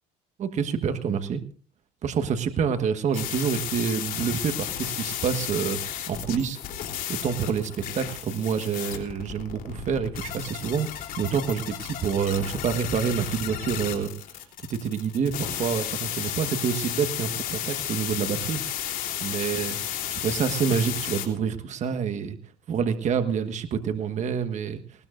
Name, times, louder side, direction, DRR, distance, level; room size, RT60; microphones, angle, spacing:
voice 1, 0.4-1.4 2.0-5.8 6.1-6.6 7.1-10.9 11.2-14.1 14.6-18.6 19.2-19.8 20.1-22.4 22.7-24.8, right 7 dB, 45° right, 8 dB, 1.4 m, -27 dB
sound 1, 3.1-21.3, left 10 dB, 55° left, 3.3 m, -33 dB
19.5 x 19.5 x 2.5 m, 0.41 s
cardioid pair, 120°, 17 cm